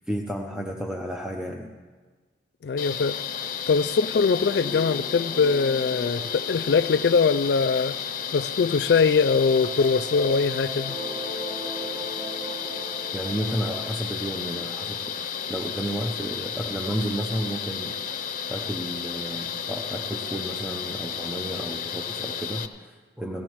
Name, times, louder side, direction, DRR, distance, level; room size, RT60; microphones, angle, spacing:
voice 1, 0.1-1.7 13.1-18.0 18.5-23.4, equal, 5° right, 0.6 m, -32 dB
voice 2, 2.6-3.2 3.7-8.0 8.3-11.0, left 5 dB, 70° left, 0.4 m, -22 dB
sound 1, 2.8-22.7, left 7 dB, 50° left, 0.8 m, -33 dB
sound 2, 4.1-9.0 9.3-13.9, equal, 25° right, 1.2 m, -39 dB
17.5 x 16.5 x 3.1 m
head